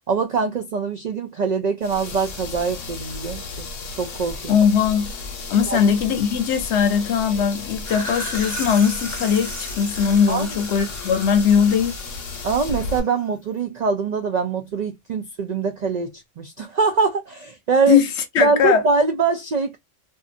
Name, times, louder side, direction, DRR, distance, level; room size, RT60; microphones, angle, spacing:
voice 1, 0.1-3.7 4.0-4.5 5.7-5.8 10.3-10.5 12.4-18.0 18.4-19.8, right 4 dB, 70° right, 0.4 m, -23 dB
sound 1, 1.8-13.0, left 3 dB, 85° left, 1.1 m, -34 dB
voice 2, 4.5-5.1 5.5-12.0 17.9-18.1 18.3-18.8, left 7 dB, 65° left, 0.9 m, -19 dB
sound 2, 7.7-13.3, left 1 dB, 15° left, 0.9 m, -35 dB
2.6 x 2.5 x 2.4 m
omnidirectional pair, 1.3 m